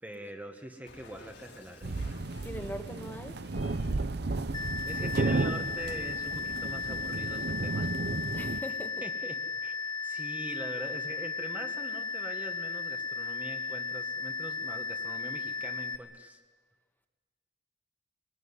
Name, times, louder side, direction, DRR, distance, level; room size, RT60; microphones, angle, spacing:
voice 1, 0.0-2.2 4.8-8.0 8.4-8.6 9.0-9.8 10.0-16.4, right 1 dB, 10° right, 3 dB, 1.3 m, -43 dB
Cat, 0.8-4.1, left 3 dB, 70° left, 3.4 m, -55 dB
sound 1, 1.8-8.6, right 3 dB, 65° right, 0.8 m, -33 dB
voice 2, 2.4-3.4 8.3-9.1 10.2-10.4, equal, 10° left, 5 dB, 1.5 m, -41 dB
sound 2, 4.5-16.0, left 5 dB, 30° left, 2.3 m, -35 dB
23.5 x 19.5 x 9.7 m, 1.5 s
head